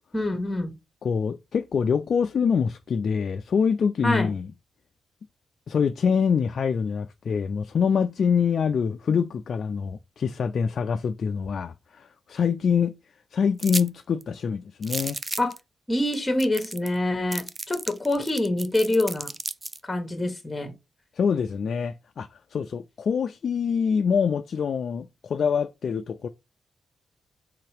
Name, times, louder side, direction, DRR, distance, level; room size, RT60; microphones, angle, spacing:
voice 1, 0.1-0.8 4.0-4.3 15.4-15.5 15.9-19.3 19.8-20.7, left 1 dB, 20° left, 1.2 m, -25 dB
voice 2, 1.0-4.5 5.7-13.0 13.3-15.2 21.2-26.3, left 6 dB, 65° left, 0.3 m, -25 dB
sound 1, 13.6-13.9 14.2-14.3 14.8-15.6 16.1-16.2 16.4-17.0 17.3-19.8, right 3 dB, 30° right, 0.4 m, -33 dB
3.6 x 2.9 x 4.7 m
supercardioid pair, 55°, 0 cm